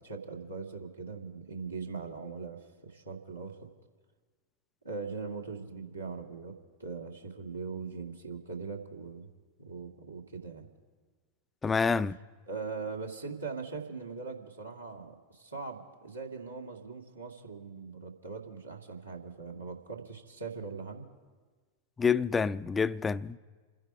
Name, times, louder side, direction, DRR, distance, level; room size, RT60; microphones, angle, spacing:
voice 1, 0.0-3.6 4.8-6.5 6.8-9.3 9.6-10.7 12.5-21.1, right 4 dB, 85° right, 2.3 m, -41 dB
voice 2, 11.6-12.2 22.0-23.4, left 5 dB, 15° left, 0.4 m, -27 dB
28.5 x 10.5 x 4.8 m
figure-of-eight pair, 90°, 0 cm